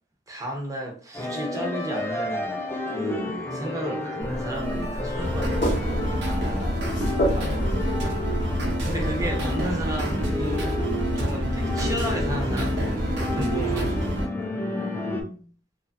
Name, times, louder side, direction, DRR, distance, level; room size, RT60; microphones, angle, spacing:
voice 1, 0.3-2.6 2.9-5.7 8.8-10.7 11.0-14.3, equal, 20° right, 0.7 m, -33 dB
sound 1, 1.1-15.2, left 1 dB, 15° left, 0.4 m, -32 dB
sound 2, 4.2-9.3, equal, 50° left, 0.6 m, -30 dB
sound 3, 4.5-14.3, equal, 75° right, 0.7 m, -28 dB
voice 2, 6.6-8.0 14.7-15.5, left 3 dB, 90° left, 0.7 m, -41 dB
2.8 x 2.3 x 2.6 m
head